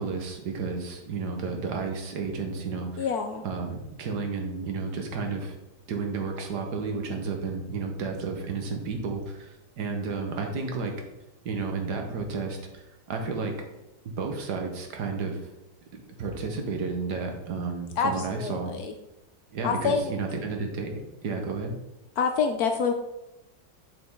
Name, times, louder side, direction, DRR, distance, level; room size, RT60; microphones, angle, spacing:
voice 1, 0.0-3.1 3.4-5.5 5.9-10.9 11.4-12.8 13.1-13.5 14.2-15.4 16.2-18.7 19.5-20.9 21.2-21.7, right 4 dB, 65° right, 3 dB, 1.6 m, -32 dB
voice 2, 3.0-3.4 18.0-18.9 19.6-20.1 22.2-22.9, left 5 dB, 70° left, 6 dB, 0.9 m, -27 dB
7.5 x 5.2 x 3.7 m, 0.95 s
omnidirectional pair, 2.0 m